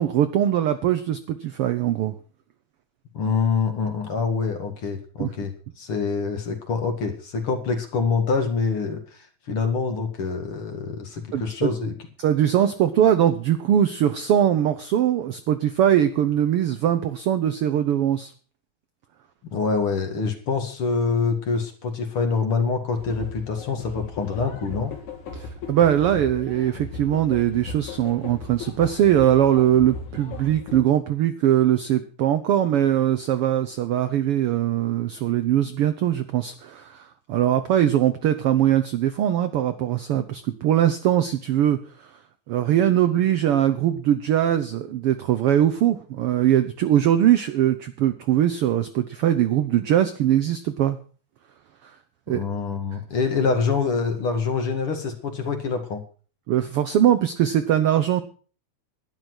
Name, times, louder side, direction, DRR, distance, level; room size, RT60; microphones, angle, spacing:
voice 1, 0.0-2.1 5.2-5.3 11.3-11.7 12.2-18.3 25.3-42.1 42.5-51.0 51.8-51.9 52.3-52.4 56.5-58.2, right 11 dB, 85° right, 10 dB, 1.2 m, -21 dB
voice 2, 3.1-5.5 5.8-11.9 19.4-24.9 52.3-56.0, left 5 dB, 45° left, 5 dB, 2.6 m, -25 dB
sound 1, 23.0-30.8, left 4 dB, 70° left, 3.2 m, -37 dB
12.0 x 10.5 x 6.2 m, 0.40 s
omnidirectional pair, 3.6 m